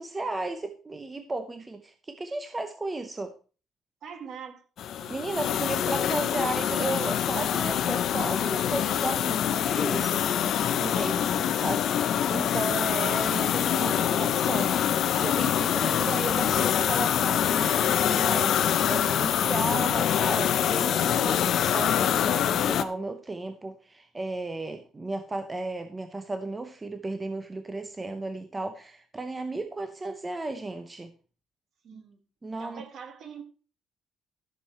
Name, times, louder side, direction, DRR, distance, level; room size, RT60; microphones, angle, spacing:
voice 1, 0.0-3.3 5.1-10.2 10.8-14.8 15.2-31.1 31.9-32.0 32.4-32.8, right 2 dB, 15° right, 8 dB, 0.6 m, -34 dB
voice 2, 4.0-4.6 5.0-6.1 31.8-32.2 32.6-33.4, right 6 dB, 50° right, 7 dB, 1.7 m, -44 dB
sound 1, 4.8-22.8, left 9 dB, 50° left, 0.6 m, -25 dB
13.5 x 6.5 x 4.3 m, 0.38 s
cardioid pair, 175°, 0 cm